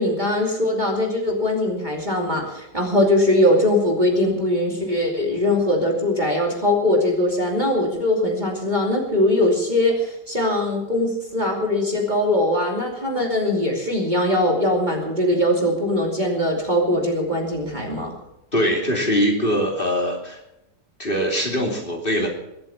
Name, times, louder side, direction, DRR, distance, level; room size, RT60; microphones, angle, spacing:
voice 1, 0.0-18.1, left 1 dB, 25° right, 0 dB, 2.8 m, -21 dB
voice 2, 18.5-20.4 21.0-22.3, equal, 30° left, 0 dB, 3.0 m, -22 dB
23.0 x 7.8 x 7.1 m, 0.85 s
omnidirectional pair, 1.9 m